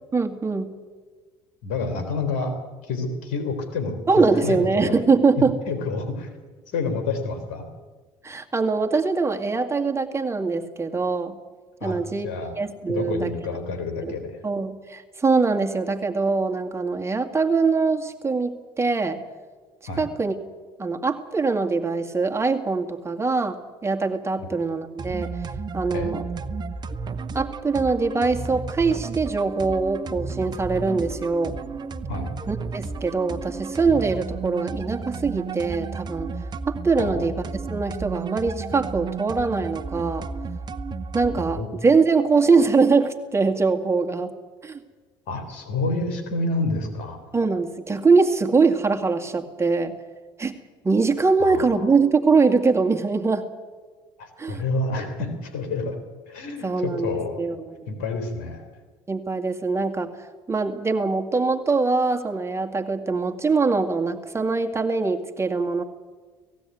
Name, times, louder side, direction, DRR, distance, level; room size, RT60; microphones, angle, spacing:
voice 1, 0.1-0.7 4.1-5.5 8.2-11.4 11.8-12.3 12.6-13.3 14.0-14.2 14.4-19.2 20.0-20.3 20.8-25.3 25.7-26.2 27.3-31.5 32.5-36.3 36.7-37.3 37.7-40.3 41.1-44.3 44.6-44.8 47.3-50.0 50.4-50.6 50.8-53.5 54.4-54.6 56.6-57.9 59.1-60.1 60.5-65.8, right 4 dB, 25° right, 5 dB, 2.2 m, -23 dB
voice 2, 1.6-2.6 2.8-5.0 5.7-6.3 6.7-7.7 11.8-12.0 12.2-12.6 12.9-14.4 19.9-20.0 24.4-24.5 25.9-26.1 32.1-32.3 37.0-37.2 41.3-41.7 45.3-47.2 51.4-51.8 54.2-56.0 56.3-57.4 57.9-58.6, left 3 dB, 75° left, 7 dB, 3.8 m, -28 dB
sound 1, 25.0-41.6, right 4 dB, 40° right, 1.1 m, -33 dB
18.0 x 16.0 x 9.4 m, 1.4 s
hypercardioid pair, 65°, 12 cm